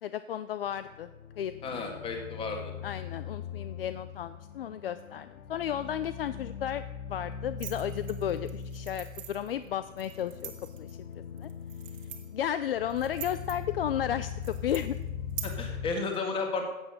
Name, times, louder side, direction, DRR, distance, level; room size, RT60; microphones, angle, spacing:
voice 1, 0.0-1.1 1.4-2.0 2.8-6.8 7.1-11.0 11.3-11.5 12.3-15.0, left 10 dB, 45° left, 13 dB, 0.5 m, -33 dB
sound 1, 0.7-15.9, left 7 dB, 85° left, 1.2 m, -41 dB
voice 2, 1.6-2.7 15.4-16.7, left 3 dB, 15° left, 3 dB, 1.9 m, -33 dB
sound 2, 7.6-15.4, right 14 dB, 25° right, 1.7 m, -46 dB
15.0 x 8.8 x 6.6 m, 1.2 s
hypercardioid pair, 155°, 41 cm